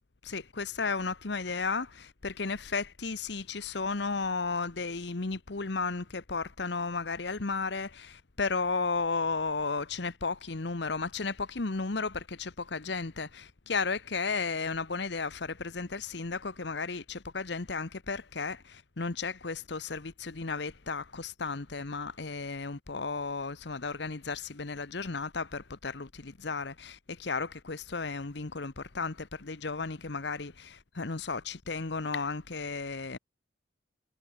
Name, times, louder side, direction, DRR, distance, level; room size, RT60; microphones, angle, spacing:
voice 1, 0.2-33.2, left 4 dB, 65° left, 1.0 m, -34 dB
head